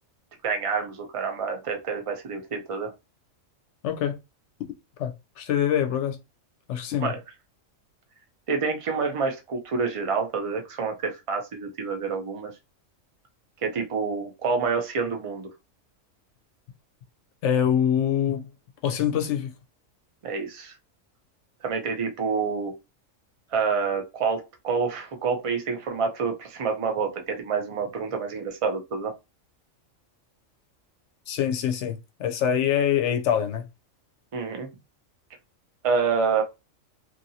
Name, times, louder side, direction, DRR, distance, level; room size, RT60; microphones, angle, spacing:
voice 1, 0.4-2.9 7.0-7.2 8.5-12.5 13.6-15.5 20.2-20.7 21.6-22.7 23.5-29.1 34.3-34.7 35.8-36.4, right 5 dB, 45° right, 0.4 m, -27 dB
voice 2, 3.8-4.2 5.0-6.2 6.7-7.1 17.4-18.5 18.8-19.5 31.3-33.6, left 9 dB, 65° left, 0.8 m, -24 dB
2.8 x 2.7 x 2.7 m
omnidirectional pair, 1.4 m